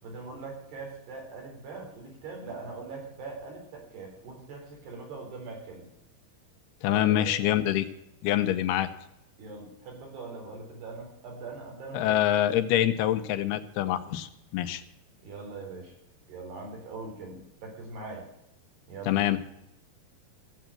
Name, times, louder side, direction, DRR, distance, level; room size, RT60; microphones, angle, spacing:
voice 1, 0.0-5.9 6.9-7.4 9.4-12.2 15.2-15.9 16.3-18.2 18.9-19.2, right 3 dB, 85° right, 0 dB, 6.1 m, -41 dB
voice 2, 6.8-7.9 8.2-8.9 11.9-14.8 19.1-19.4, left 12 dB, 85° left, 9 dB, 2.8 m, -25 dB
14.0 x 8.2 x 9.0 m, 0.81 s
omnidirectional pair, 4.5 m